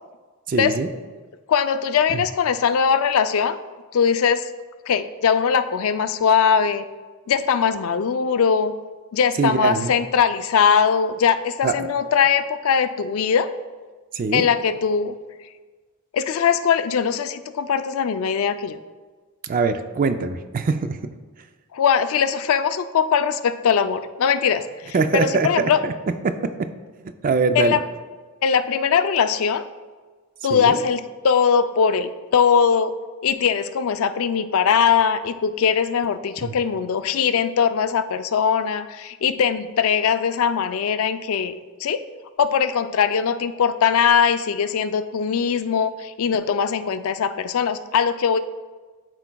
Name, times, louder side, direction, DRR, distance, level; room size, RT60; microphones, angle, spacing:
voice 1, 0.5-0.9 2.1-2.2 9.4-9.9 11.6-11.7 14.1-14.5 19.4-21.0 24.9-26.7 27.2-27.8 30.5-30.8 36.4-36.5, right 4 dB, 40° right, 9 dB, 0.4 m, -23 dB
voice 2, 1.5-3.6 3.9-4.5 4.9-6.8 7.3-8.7 9.1-13.5 14.3-15.1 16.1-18.8 21.7-25.8 27.5-27.8 28.4-29.7 30.4-32.9 33.2-42.0 42.4-48.4, left 7 dB, 70° left, 11 dB, 0.4 m, -21 dB
12.0 x 4.5 x 2.2 m, 1.4 s
head